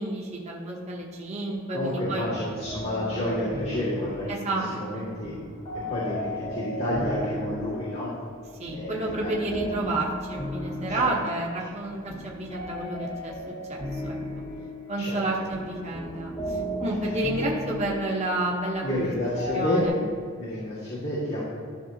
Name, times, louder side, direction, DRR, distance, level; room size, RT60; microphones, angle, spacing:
voice 1, 0.0-2.3 4.3-4.7 4.9-5.0 8.6-13.3 13.7-14.2 14.9-19.1 19.5-20.0, right 2 dB, 30° right, -2 dB, 1.0 m, -30 dB
voice 2, 1.7-5.4 5.9-8.1 8.7-9.3 9.6-9.7 10.9-11.1 11.6-11.7 15.0-15.2 16.8-17.1 18.8-19.8 20.4-21.4, left 1 dB, 60° left, -9 dB, 2.0 m, -30 dB
sound 1, 2.1-19.9, left 1 dB, 25° left, 1.4 m, -36 dB
13.0 x 6.1 x 2.8 m, 2.3 s
head